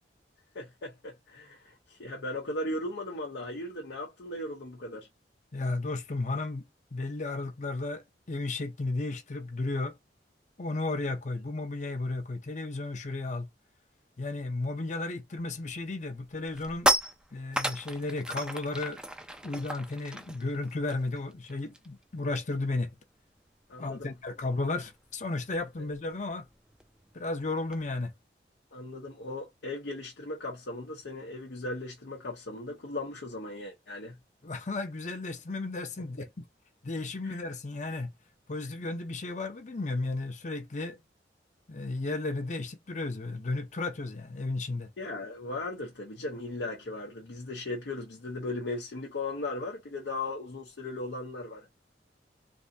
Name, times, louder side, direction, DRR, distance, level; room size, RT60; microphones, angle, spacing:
voice 1, 0.5-5.1 23.7-24.1 28.7-34.2 36.2-36.3 37.2-37.4 45.0-51.9, left 2 dB, 90° left, 0.8 m, -37 dB
voice 2, 5.5-6.6 6.9-8.0 8.3-10.0 10.6-13.5 14.2-16.9 17.3-19.0 19.4-22.9 23.8-26.5 27.1-28.1 34.4-36.3 36.8-38.1 38.5-41.0 41.7-44.9, left 2 dB, 45° left, 0.6 m, -34 dB
sound 1, 15.5-15.7 16.1-22.0 22.3-22.5 22.8-27.8, right 1 dB, 5° right, 0.4 m, -35 dB
3.4 x 2.6 x 2.6 m
head